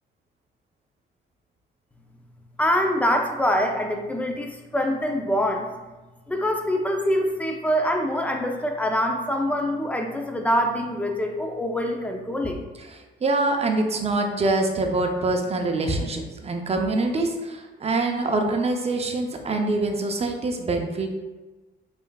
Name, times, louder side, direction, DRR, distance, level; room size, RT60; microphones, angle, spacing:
voice 1, 2.6-5.7 6.3-12.6, equal, 5° left, 3 dB, 0.6 m, -24 dB
voice 2, 12.9-21.2, right 2 dB, 30° right, 3 dB, 0.7 m, -25 dB
5.5 x 3.4 x 2.3 m, 1.2 s
cardioid pair, 90°, 20 cm